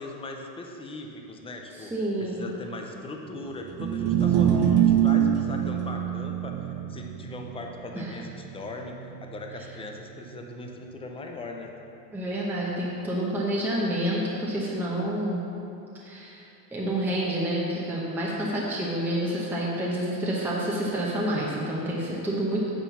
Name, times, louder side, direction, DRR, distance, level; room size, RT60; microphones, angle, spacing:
voice 1, 0.0-1.9 2.2-9.0 9.2-11.7 19.1-19.2, left 2 dB, 10° left, 2 dB, 0.5 m, -39 dB
voice 2, 1.8-2.5 8.0-8.1 12.1-15.4 16.0-16.4 16.7-22.7, right 1 dB, 5° right, -5 dB, 0.9 m, -28 dB
sound 1, 3.7-10.0, right 9 dB, 40° right, 0.6 m, -25 dB
9.0 x 4.5 x 7.0 m, 2.8 s
cardioid pair, 150°, 47 cm